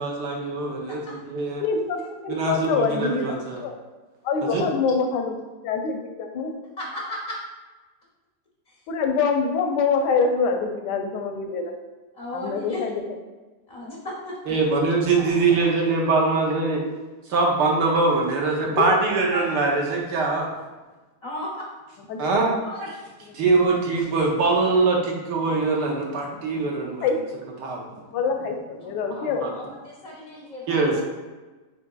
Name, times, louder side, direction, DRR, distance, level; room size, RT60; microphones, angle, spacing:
voice 1, 0.0-1.6 2.3-3.6 4.4-4.6 14.5-16.8 17.3-20.5 22.2-22.9 23.3-27.1 27.6-27.9 29.4-29.5 30.7-31.0, right 3 dB, 90° right, -1 dB, 1.4 m, -23 dB
voice 2, 1.6-3.8 4.2-5.4 5.6-6.5 8.9-11.7 12.3-12.9 18.8-19.0 19.3-19.5 22.1-22.2 27.0-27.2 28.1-29.5, left 5 dB, 85° left, 4 dB, 1.2 m, -25 dB
voice 3, 4.2-4.8 6.8-7.4 8.7-8.8 12.1-12.8 13.7-14.6 15.1-15.7 21.2-21.7 22.6-22.9 28.8-29.3 29.5-31.0, left 1 dB, 60° left, -4 dB, 0.4 m, -36 dB
6.7 x 2.9 x 2.3 m, 1.2 s
omnidirectional pair, 1.8 m